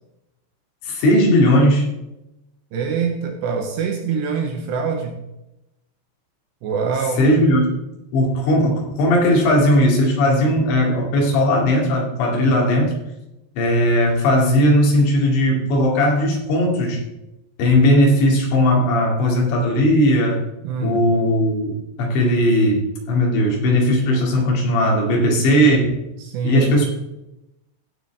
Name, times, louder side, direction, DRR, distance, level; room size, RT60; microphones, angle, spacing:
voice 1, 0.8-1.9 7.2-7.7 8.1-13.0 13.6-17.0 17.6-20.5 20.8-25.9 26.4-26.9, left 1 dB, 65° left, -1 dB, 4.4 m, -17 dB
voice 2, 2.7-5.2 6.6-7.3 20.6-21.0 26.2-26.7, right 5 dB, 75° right, 3 dB, 2.8 m, -24 dB
16.0 x 6.8 x 3.4 m, 0.91 s
omnidirectional pair, 5.8 m